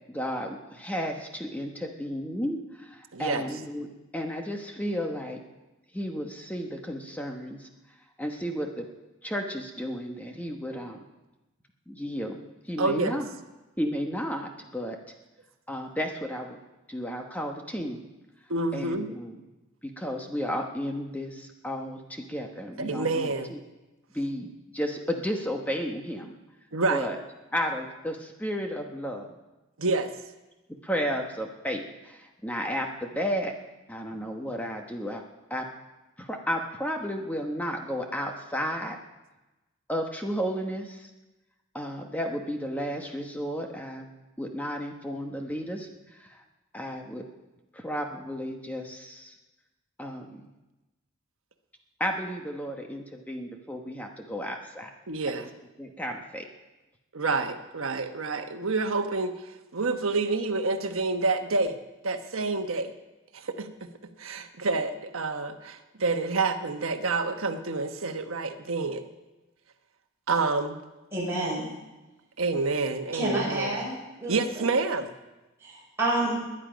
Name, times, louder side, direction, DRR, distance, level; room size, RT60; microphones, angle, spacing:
voice 1, 0.1-5.4 5.9-7.7 8.2-8.9 9.2-11.0 11.9-13.3 13.8-15.0 15.7-16.6 16.9-18.0 18.7-19.4 19.8-23.6 24.1-26.3 26.9-27.2 27.5-29.4 30.8-33.5 33.9-35.2 35.5-35.7 36.2-39.0 39.9-41.1 41.7-44.1 44.4-46.4 46.7-47.2 47.7-49.3 50.0-50.5 52.0-54.9 55.4-55.5 55.8-56.5, equal, 5° left, 3 dB, 1.0 m, -33 dB
voice 2, 3.1-3.4 12.8-13.2 18.5-19.1 22.8-23.6 26.7-27.1 29.8-30.1 55.1-55.5 57.1-61.8 62.0-62.9 63.3-69.0 70.3-70.8 72.4-73.8 74.3-75.1, right 3 dB, 75° right, 6 dB, 1.2 m, -28 dB
voice 3, 71.1-71.7 73.1-73.9 74.2-74.7 75.6-76.4, right 1 dB, 10° right, -6 dB, 5.6 m, -29 dB
20.5 x 10.0 x 5.1 m, 1.1 s
head